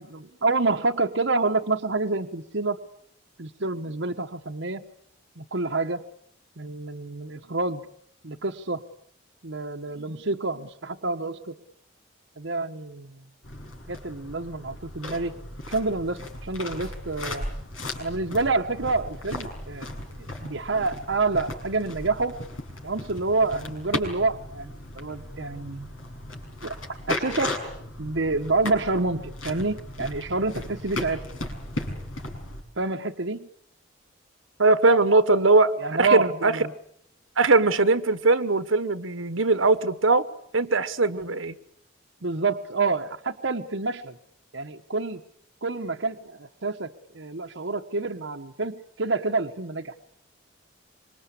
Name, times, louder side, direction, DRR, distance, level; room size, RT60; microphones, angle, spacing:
voice 1, 0.0-2.8 3.4-4.8 5.4-6.0 6.6-7.9 8.2-8.8 9.4-11.5 12.4-13.3 13.9-15.4 15.7-17.5 18.0-19.9 20.2-22.4 22.8-25.9 26.6-26.8 27.1-27.6 28.0-31.2 32.8-33.5 35.8-36.7 42.2-44.2 44.5-45.2 45.6-50.0, right 3 dB, 65° right, 1.1 m, -28 dB
sound 1, 13.4-32.6, left 1 dB, 85° left, 6.2 m, -36 dB
voice 2, 34.6-35.7 36.0-36.6 37.4-40.3 40.5-41.5, right 3 dB, 80° right, 1.4 m, -20 dB
26.0 x 24.5 x 8.4 m
head